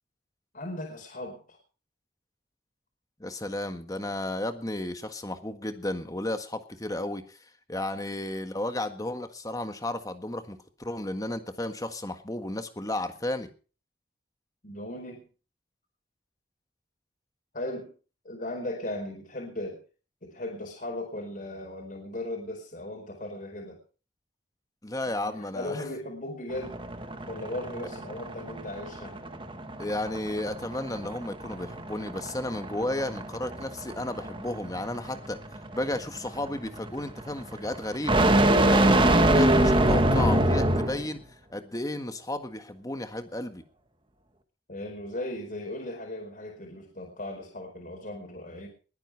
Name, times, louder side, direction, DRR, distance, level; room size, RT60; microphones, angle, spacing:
voice 1, 0.5-1.6 14.6-15.2 17.5-17.9 18.2-19.8 20.2-23.8 25.2-26.8 27.3-29.2 44.7-48.7, left 1 dB, 50° left, 0 dB, 4.7 m, -37 dB
voice 2, 3.2-7.4 7.7-13.5 24.8-25.8 29.8-35.4 35.7-38.3 38.6-41.2 41.5-43.6, left 1 dB, 20° left, 8 dB, 1.6 m, -33 dB
sound 1, 26.5-41.1, right 1 dB, 30° right, 1.6 m, -25 dB
21.0 x 9.7 x 4.8 m, 0.38 s
head